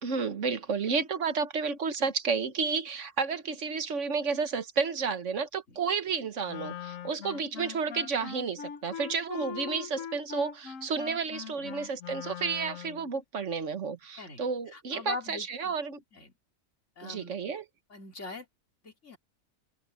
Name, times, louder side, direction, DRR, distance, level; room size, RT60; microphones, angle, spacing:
voice 1, 0.0-16.0 17.0-17.6, right 5 dB, 70° right, 1.6 m, -31 dB
Wind instrument woodwind instrument, 6.5-13.1, left 9 dB, 90° left, 1.3 m, -41 dB
voice 2, 14.7-15.7 16.1-16.3 17.0-17.4 17.9-18.5 18.8-19.2, left 4 dB, 65° left, 3.4 m, -42 dB
open air
omnidirectional pair, 1.3 m